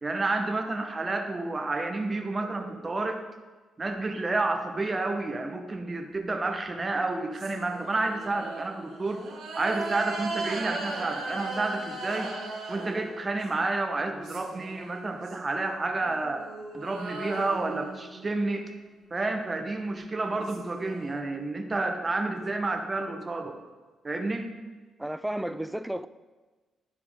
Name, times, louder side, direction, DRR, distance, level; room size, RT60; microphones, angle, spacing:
voice 1, 0.0-3.2 3.8-9.2 9.5-12.3 12.7-16.5 16.7-18.7 19.1-23.6 24.0-24.5, right 2 dB, 30° right, 1.0 m, -30 dB
sound 1, 6.7-13.6 14.0-15.4 15.9-18.6 19.9-20.0 20.2-21.1, right 3 dB, 75° right, 2.0 m, -38 dB
voice 2, 25.0-26.1, right 1 dB, 5° right, 0.4 m, -32 dB
11.5 x 4.6 x 3.6 m
supercardioid pair, 60°, 0 cm